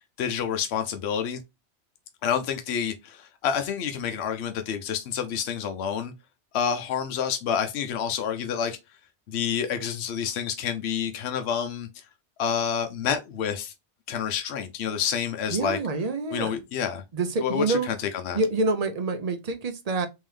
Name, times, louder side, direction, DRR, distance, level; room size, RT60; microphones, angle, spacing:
voice 1, 0.0-1.4 2.2-6.1 6.5-8.8 9.3-12.0 12.4-13.7 14.1-15.8 16.3-17.0 17.4-18.4, left 8 dB, 75° left, 0.9 m, -28 dB
voice 2, 15.5-16.6 17.1-17.9 18.3-20.1, right 3 dB, 45° right, 0.6 m, -27 dB
3.6 x 3.0 x 3.2 m
omnidirectional pair, 1.1 m